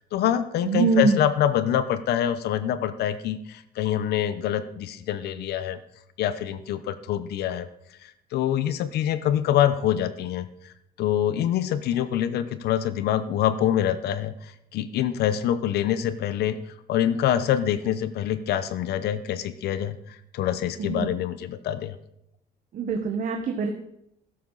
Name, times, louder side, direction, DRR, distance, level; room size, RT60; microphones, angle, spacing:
voice 1, 0.1-5.8 6.2-7.7 8.0-10.5 11.0-14.3 14.7-16.6 16.9-22.0, left 10 dB, 75° left, 13 dB, 0.9 m, -25 dB
voice 2, 0.6-1.2 20.8-21.1 22.7-23.7, right 4 dB, 50° right, 4 dB, 1.3 m, -23 dB
13.0 x 11.5 x 4.0 m, 0.78 s
cardioid pair, 110°, 17 cm